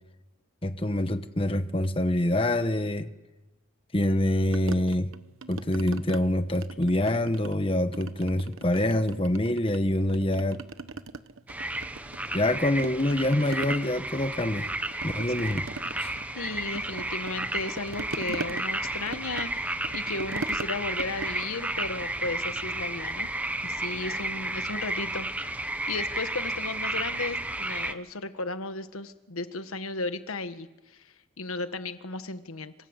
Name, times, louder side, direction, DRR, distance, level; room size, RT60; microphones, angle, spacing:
voice 1, 0.6-3.1 3.9-5.1 5.5-10.6 12.3-14.7 15.0-15.7 16.0-16.1, left 1 dB, 25° left, 9 dB, 1.1 m, -26 dB
sound 1, 4.5-6.2 6.5-7.6 7.9-9.8 10.1-12.5 12.8-22.6, right 3 dB, 75° right, 1.1 m, -40 dB
sound 2, 11.5-27.9, right 1 dB, 5° right, 0.9 m, -32 dB
voice 2, 16.3-23.3 23.6-31.0 31.4-32.7, left 3 dB, 90° left, 10 dB, 1.5 m, -35 dB
27.0 x 26.0 x 8.2 m, 1.1 s
head